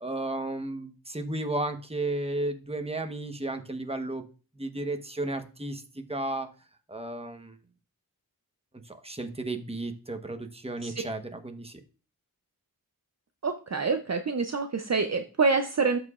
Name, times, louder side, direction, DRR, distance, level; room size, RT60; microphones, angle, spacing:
voice 1, 0.0-4.2 4.5-6.5 6.9-7.6 8.9-11.8, right 2 dB, 15° right, 6 dB, 1.0 m, -33 dB
voice 2, 13.4-16.0, right 4 dB, 45° right, 7 dB, 0.6 m, -26 dB
13.0 x 5.0 x 2.4 m, 0.35 s
wide cardioid pair, 70°, 38 cm